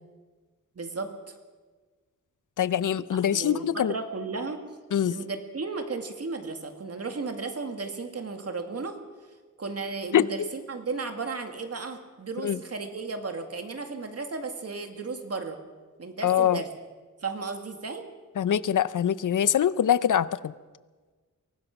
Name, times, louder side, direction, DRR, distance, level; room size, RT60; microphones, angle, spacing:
voice 1, 0.8-1.1 3.3-4.6 5.1-9.0 9.6-15.6 16.0-16.7 17.2-18.0, right 4 dB, 50° right, 5 dB, 2.2 m, -34 dB
voice 2, 2.6-3.9 4.9-5.2 10.1-10.5 12.4-12.6 16.2-16.6 18.4-20.5, left 9 dB, 70° left, 16 dB, 0.7 m, -24 dB
23.5 x 18.5 x 6.0 m, 1.4 s
wide cardioid pair, 125°, 32 cm